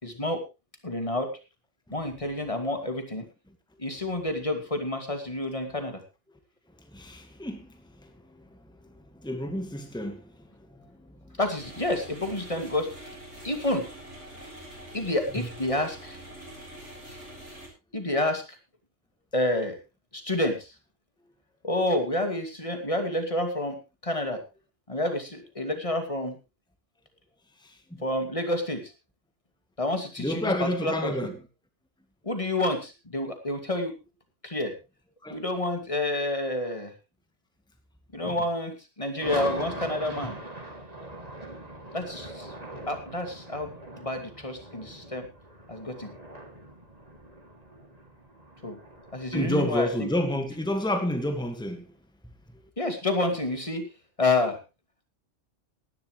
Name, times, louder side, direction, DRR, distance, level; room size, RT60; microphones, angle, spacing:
voice 1, 0.0-0.4 0.8-1.4 1.9-3.2 3.8-6.0 11.4-13.1 13.4-13.9 14.9-16.2 17.9-18.6 19.3-19.8 20.1-20.7 21.6-24.4 24.9-26.4 28.0-28.9 29.8-31.3 32.2-33.9 34.4-34.7 35.3-36.9 38.1-40.4 41.9-42.5 42.9-43.7 44.0-45.3 45.7-46.1 48.6-48.8 49.1-50.1 52.8-53.8 54.2-54.6, left 1 dB, 25° left, 2.6 m, -29 dB
voice 2, 6.9-11.4 15.4-15.5 27.6-28.0 30.2-31.3 35.2-35.4 38.2-38.4 49.3-51.9, left 1 dB, 5° left, 1.7 m, -31 dB
sound 1, 11.5-17.7, right 1 dB, 75° right, 7.0 m, -44 dB
sound 2, 39.2-51.4, right 1 dB, 35° right, 2.8 m, -41 dB
18.0 x 12.0 x 3.3 m
omnidirectional pair, 1.2 m